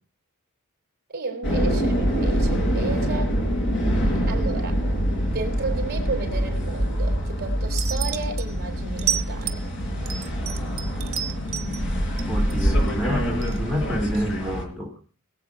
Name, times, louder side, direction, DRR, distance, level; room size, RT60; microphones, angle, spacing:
voice 1, 1.1-3.4 4.3-4.9 5.3-9.6, right 3 dB, 45° right, 4.2 m, -33 dB
sound 1, 1.4-14.6, equal, 60° left, 4.3 m, -25 dB
sound 2, 7.8-8.4 9.0-9.7 10.1-11.8 12.2-12.9 13.4-13.6, right 11 dB, 70° right, 1.3 m, -30 dB
voice 2, 12.3-14.9, equal, ahead, 2.8 m, -28 dB
22.0 x 8.4 x 4.7 m
head